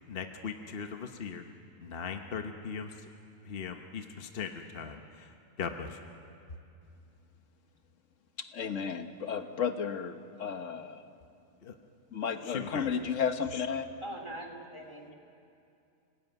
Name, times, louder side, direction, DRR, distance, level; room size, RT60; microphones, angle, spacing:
voice 1, 0.1-1.4 1.8-2.9 3.4-5.3 5.6-6.0 11.6-11.7 12.4-12.9, left 6 dB, 45° left, 5 dB, 1.2 m, -39 dB
voice 2, 8.5-11.1 12.1-13.9, left 7 dB, 65° left, 8 dB, 1.5 m, -33 dB
voice 3, 14.0-15.1, right 1 dB, 20° left, 2 dB, 2.5 m, -42 dB
29.0 x 19.0 x 9.3 m, 2.6 s
omnidirectional pair, 1.4 m